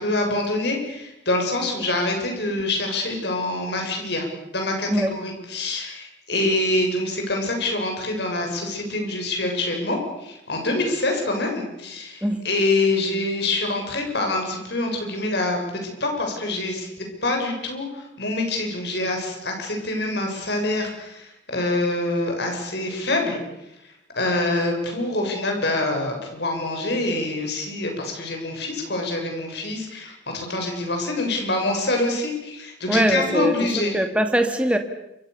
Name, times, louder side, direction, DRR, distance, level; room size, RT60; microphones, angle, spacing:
voice 1, 0.0-4.3 4.5-23.4 24.2-33.9, left 2 dB, 60° left, 7.5 m, -25 dB
voice 2, 32.9-33.6 33.9-34.8, right 1 dB, 5° right, 2.1 m, -21 dB
28.5 x 24.5 x 7.0 m
head